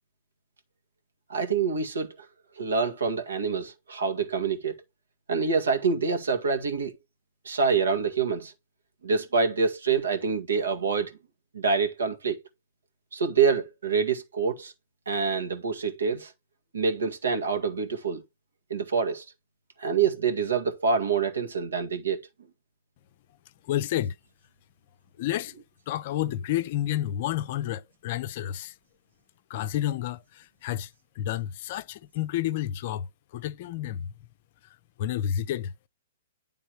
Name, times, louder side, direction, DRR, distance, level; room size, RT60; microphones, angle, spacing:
voice 1, 1.3-2.2 2.6-4.8 5.3-6.9 7.5-8.5 9.0-11.1 11.5-12.4 13.1-14.7 15.1-16.3 16.7-18.2 18.7-19.3 19.8-22.2, right 5 dB, 80° right, 1.9 m, -26 dB
voice 2, 23.7-24.1 25.2-25.5 25.9-28.7 29.5-30.9 31.2-33.1 33.3-34.1 35.0-35.9, left 12 dB, 50° left, 0.5 m, -30 dB
10.0 x 3.5 x 4.6 m
hypercardioid pair, 120°, 0 cm